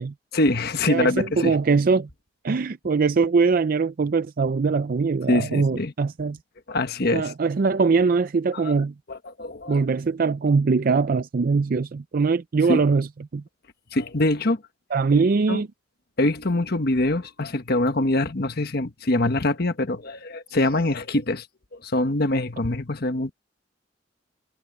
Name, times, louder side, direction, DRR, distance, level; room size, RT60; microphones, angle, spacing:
voice 1, 0.3-1.6 5.3-5.9 6.7-7.3 8.5-8.7 9.1-9.8 12.7-12.8 13.9-14.6 15.5-15.6 16.2-21.5 21.7-23.3, left 2 dB, 55° left, 1.3 m, -24 dB
voice 2, 0.9-2.1 2.4-6.4 7.1-8.9 9.7-13.1 13.3-13.4 14.9-15.7, right 4 dB, 50° right, 0.4 m, -22 dB
head